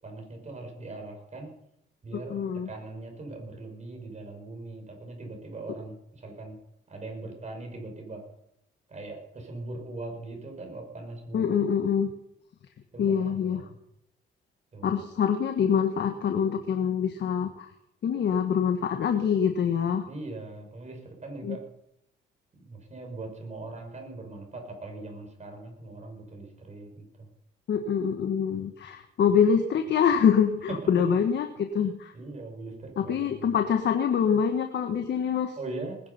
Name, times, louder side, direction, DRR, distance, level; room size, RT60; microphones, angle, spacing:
voice 1, 0.0-1.6 2.0-6.6 6.9-8.3 8.9-11.7 12.9-13.7 14.7-15.0 20.1-21.7 22.6-27.3 30.7-30.8 32.1-33.5 35.6-36.0, right 2 dB, 35° right, 3 dB, 5.7 m, -40 dB
voice 2, 2.1-2.7 11.3-12.1 13.0-13.6 14.8-17.7 18.0-20.1 21.4-21.6 27.7-32.1 33.0-35.6, left 7 dB, 60° left, 6 dB, 1.5 m, -25 dB
19.5 x 10.5 x 5.6 m, 0.79 s
cardioid pair, 90°, 20 cm